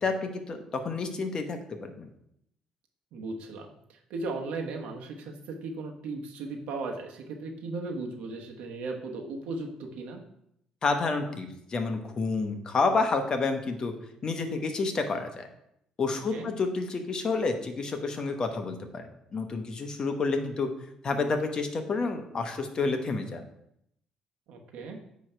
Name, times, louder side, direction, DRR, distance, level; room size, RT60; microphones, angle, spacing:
voice 1, 0.0-2.1 10.8-13.9 14.2-15.5 16.0-20.7 21.0-23.4, left 4 dB, 40° left, 6 dB, 1.0 m, -29 dB
voice 2, 3.1-10.2 16.3-16.5 24.5-25.0, right 3 dB, 80° right, 3 dB, 1.1 m, -37 dB
9.3 x 3.1 x 4.5 m, 0.75 s
cardioid pair, 100°, 2 cm